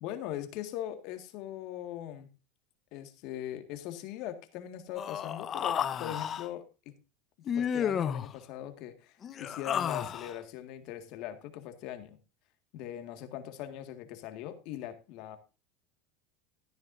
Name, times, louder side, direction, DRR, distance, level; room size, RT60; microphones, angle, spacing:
voice 1, 0.0-2.3 2.9-7.0 7.6-12.2 12.7-15.4, left 11 dB, 60° left, 8 dB, 1.8 m, -41 dB
Human voice, 4.9-6.5 7.5-8.3 9.2-10.4, left 8 dB, 35° left, 0.9 m, -32 dB
13.5 x 10.5 x 2.6 m, 0.30 s
supercardioid pair, 110°, 0 cm